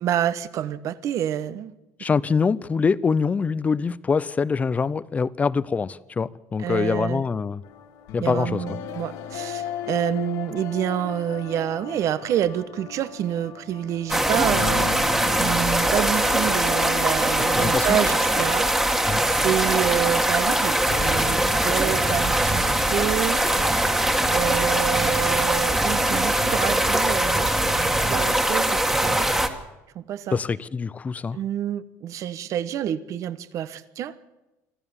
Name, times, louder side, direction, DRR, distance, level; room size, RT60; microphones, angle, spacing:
voice 1, 0.0-1.7 6.6-7.2 8.2-15.0 15.4-18.7 19.1-23.4 24.3-29.3 29.9-30.4 31.3-34.2, right 10 dB, 55° right, 1.2 m, -28 dB
voice 2, 2.0-7.6 8.1-8.6 17.5-18.0 19.1-19.2 30.3-31.4, left 5 dB, 20° left, 0.7 m, -24 dB
sound 1, 7.6-20.3 20.6-26.5, left 9 dB, 75° left, 2.1 m, -38 dB
sound 2, 14.1-29.5, right 1 dB, 5° right, 1.9 m, -22 dB
25.5 x 14.0 x 7.2 m
cardioid pair, 120°, 6 cm